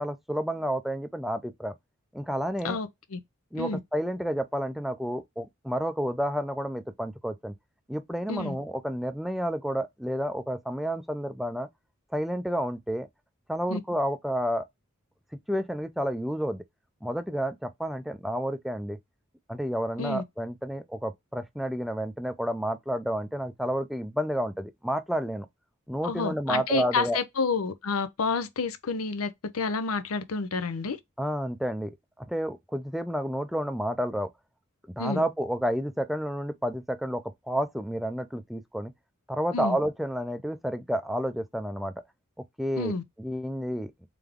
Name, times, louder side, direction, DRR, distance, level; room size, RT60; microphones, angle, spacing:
voice 1, 0.0-1.7 2.1-2.8 3.5-7.5 7.9-11.7 12.1-13.1 13.5-14.7 15.5-16.6 17.0-19.0 19.5-25.5 25.9-27.2 31.2-31.9 32.2-34.3 35.0-38.9 39.3-41.9 42.6-44.1, equal, ahead, 0.4 m, -30 dB
voice 2, 2.6-3.2 3.5-3.8 8.3-8.6 13.7-13.8 20.0-20.2 26.0-31.0 35.0-35.2 39.5-39.8 42.8-43.0, left 4 dB, 85° left, 0.7 m, -29 dB
3.6 x 3.5 x 3.5 m
head